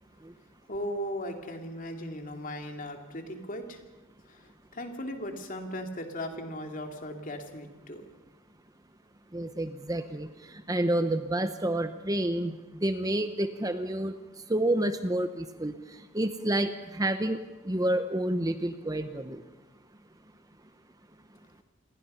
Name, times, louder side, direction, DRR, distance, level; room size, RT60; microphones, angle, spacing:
voice 1, 0.7-3.8 4.2-8.0, equal, 40° left, 4 dB, 2.7 m, -37 dB
voice 2, 9.3-19.4, right 1 dB, 15° right, 9 dB, 0.9 m, -29 dB
28.0 x 21.0 x 5.6 m, 1.2 s
head